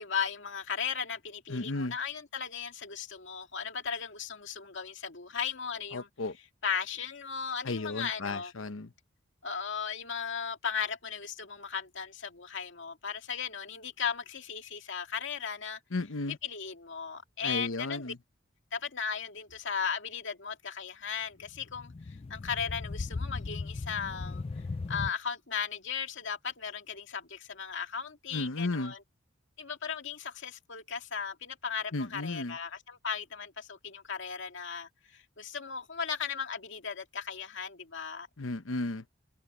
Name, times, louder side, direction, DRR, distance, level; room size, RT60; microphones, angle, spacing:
voice 1, 0.0-6.1 6.6-8.5 9.4-15.8 16.3-18.1 18.7-21.9 22.3-24.4 24.9-29.0 29.6-38.3, left 6 dB, 65° left, 2.3 m, -36 dB
voice 2, 1.5-1.9 5.9-6.3 7.6-8.9 15.9-16.4 17.4-18.2 28.3-28.9 31.9-32.6 38.4-39.0, left 2 dB, 85° left, 1.0 m, -34 dB
sound 1, 21.4-25.1, left 3 dB, 30° left, 0.4 m, -37 dB
head